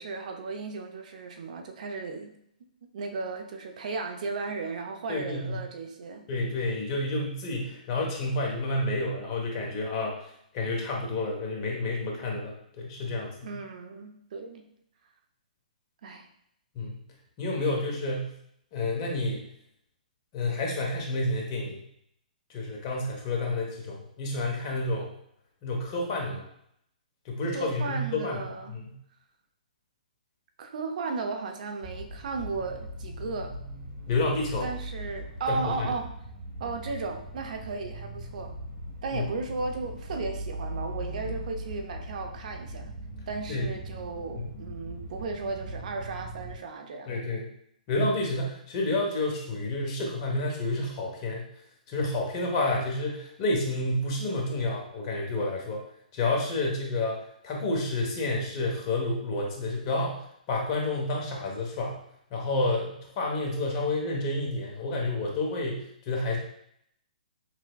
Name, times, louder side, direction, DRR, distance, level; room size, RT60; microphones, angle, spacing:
voice 1, 0.0-2.3 2.9-6.3 13.4-14.7 16.0-16.3 27.5-28.8 30.6-33.6 34.6-36.1 36.6-38.5 39.0-42.9 43.3-47.2, right 4 dB, 60° right, 5 dB, 0.6 m, -35 dB
voice 2, 5.1-5.6 6.3-10.3 10.5-13.5 16.7-17.0 17.4-18.3 18.7-19.4 20.3-21.8 22.5-25.1 25.6-26.4 27.2-28.4 28.8-28.9 34.1-34.7 35.5-35.9 39.1-39.2 43.5-43.7 44.4-44.5 47.1-47.5 47.9-51.5 51.9-55.8 56.1-57.2 57.4-60.2 60.5-62.0 62.3-66.4, left 2 dB, 35° left, -1 dB, 1.0 m, -29 dB
sound 1, 31.8-46.6, right 1 dB, 75° right, 1.5 m, -40 dB
5.8 x 2.1 x 2.3 m, 0.72 s
hypercardioid pair, 135°, 5 cm